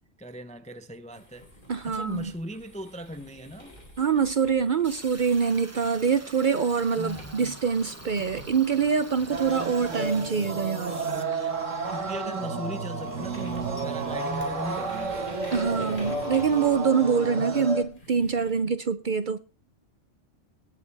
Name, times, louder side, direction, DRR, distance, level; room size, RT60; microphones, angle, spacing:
voice 1, 0.2-1.5 1.9-3.8 7.0-7.6 11.9-15.3, equal, 10° left, 0.5 m, -38 dB
sound 1, 1.1-6.5 7.0-18.6, left 1 dB, 40° left, 4.3 m, -48 dB
voice 2, 1.7-2.3 4.0-11.0 11.3-11.5 15.5-19.4, right 6 dB, 50° right, 0.7 m, -25 dB
sound 2, 4.8-11.2, right 2 dB, 15° right, 1.0 m, -46 dB
sound 3, 9.3-17.8, right 3 dB, 80° right, 2.0 m, -31 dB
18.0 x 8.4 x 3.4 m
omnidirectional pair, 1.3 m